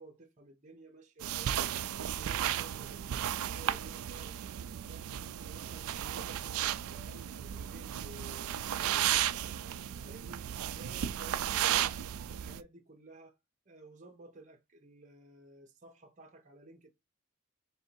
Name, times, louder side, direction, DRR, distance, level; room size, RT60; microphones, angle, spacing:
voice 1, 0.0-1.6 2.0-5.0 5.4-9.4 10.0-10.5 10.7-12.0 12.3-13.4 13.7-16.9, right 2 dB, 35° right, 0.7 m, -54 dB
sound 1, 1.2-12.6, right 11 dB, 75° right, 0.3 m, -34 dB
3.3 x 2.6 x 4.4 m
head